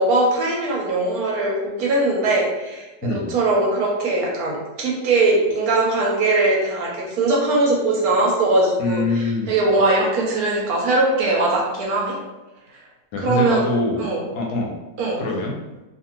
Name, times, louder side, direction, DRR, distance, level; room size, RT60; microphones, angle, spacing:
voice 1, 0.0-12.2 13.2-13.6 14.0-14.2 15.0-15.2, right 2 dB, 70° right, -2 dB, 0.9 m, -20 dB
voice 2, 3.0-3.4 8.8-9.5 13.1-14.0 14.3-14.7 15.2-15.6, left 2 dB, 75° left, -1 dB, 1.0 m, -24 dB
2.6 x 2.5 x 2.8 m, 1.1 s
omnidirectional pair, 1.8 m